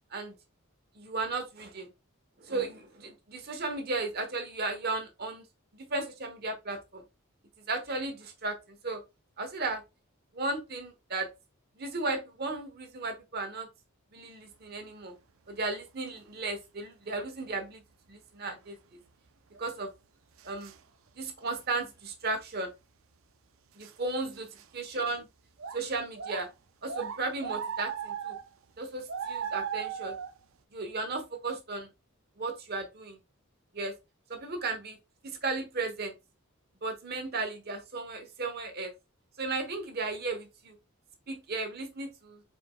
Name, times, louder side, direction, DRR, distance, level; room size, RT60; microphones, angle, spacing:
voice 1, 1.0-1.9 2.4-5.4 5.7-7.0 7.7-9.0 9.4-9.8 10.3-11.3 11.8-13.7 14.1-15.1 15.5-17.8 18.1-18.8 19.6-19.9 20.4-20.7 21.2-22.7 23.8-24.5 24.7-25.3 25.7-26.5 26.8-28.4 28.8-30.2 30.7-31.9 32.4-33.2 33.7-33.9 34.3-35.0 35.2-36.1 36.8-38.9 39.4-40.8 41.3-42.4, right 3 dB, 50° right, 1.1 m, -35 dB
sound 1, 16.2-16.3 19.5-19.6 20.4-20.8 21.8-21.9 23.8-23.9 24.3-24.7 25.0-25.1 25.6-25.8 26.2-26.4 26.9-28.5 29.1-30.4, right 7 dB, 70° right, 0.5 m, -37 dB
4.9 x 4.4 x 2.3 m
head